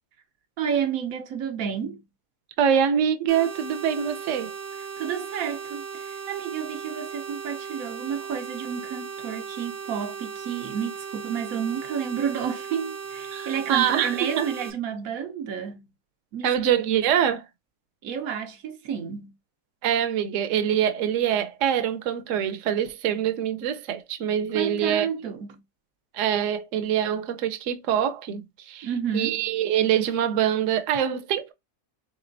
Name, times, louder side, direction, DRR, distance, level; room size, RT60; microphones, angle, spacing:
voice 1, 0.6-2.0 5.0-15.9 16.3-16.5 18.0-19.3 24.5-25.6 28.8-29.4, right 7 dB, 90° right, 1.2 m, -30 dB
voice 2, 2.6-4.5 13.3-14.5 16.4-17.4 19.8-25.1 26.1-31.5, right 9 dB, 70° right, 1.0 m, -24 dB
sound 1, 3.3-14.7, right 6 dB, 40° right, 0.6 m, -37 dB
4.1 x 3.7 x 2.5 m
omnidirectional pair, 1.4 m